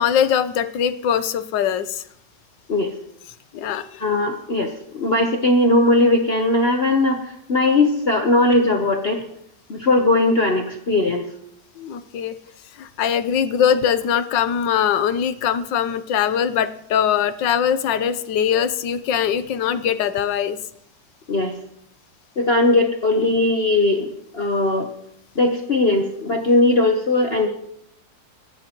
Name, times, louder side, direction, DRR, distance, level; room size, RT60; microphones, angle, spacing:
voice 1, 0.0-2.0 3.5-4.0 11.8-12.4 12.8-20.6, left 8 dB, 80° left, 12 dB, 1.4 m, -21 dB
voice 2, 4.0-9.2 9.7-11.2 21.3-21.5 22.4-24.9 25.4-27.5, left 2 dB, 40° left, 3 dB, 1.0 m, -19 dB
25.0 x 10.5 x 3.0 m, 0.73 s
omnidirectional pair, 2.0 m